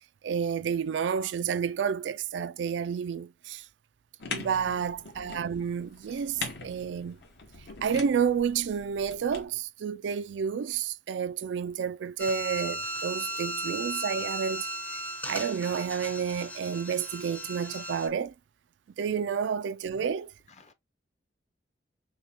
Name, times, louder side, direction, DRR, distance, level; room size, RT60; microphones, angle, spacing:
voice 1, 0.2-3.6 4.3-7.2 7.8-14.7 14.9-18.3 19.0-20.3, right 7 dB, 85° right, 0.3 m, -30 dB
sound 1, 4.2-9.4, left 4 dB, 70° left, 1.5 m, -42 dB
voice 2, 4.4-4.8 13.3-13.4 19.1-19.4 20.5-20.7, left 2 dB, 40° left, 0.9 m, -55 dB
sound 2, 12.2-18.1, right 1 dB, 10° left, 0.6 m, -36 dB
6.2 x 2.3 x 2.9 m
head